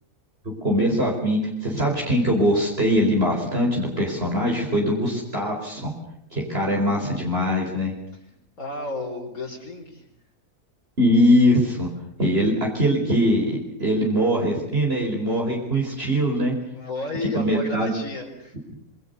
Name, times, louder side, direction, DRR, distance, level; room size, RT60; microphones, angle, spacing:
voice 1, 0.4-5.9 6.3-7.9 11.0-11.9 12.2-16.5 17.3-17.9, equal, 40° right, -1 dB, 4.8 m, -22 dB
voice 2, 8.6-10.0 16.7-18.6, left 2 dB, 65° left, -2 dB, 4.8 m, -32 dB
27.0 x 24.5 x 6.8 m, 0.73 s
omnidirectional pair, 1.6 m